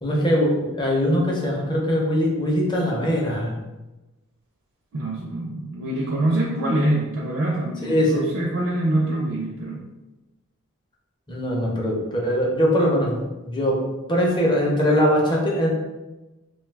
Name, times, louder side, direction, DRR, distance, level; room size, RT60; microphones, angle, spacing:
voice 1, 0.0-3.5 7.8-8.3 11.3-13.8 14.1-15.7, equal, 20° left, -2 dB, 0.6 m, -21 dB
voice 2, 4.9-9.8, right 1 dB, 65° right, -3 dB, 0.5 m, -25 dB
2.6 x 2.3 x 3.3 m, 1.1 s
head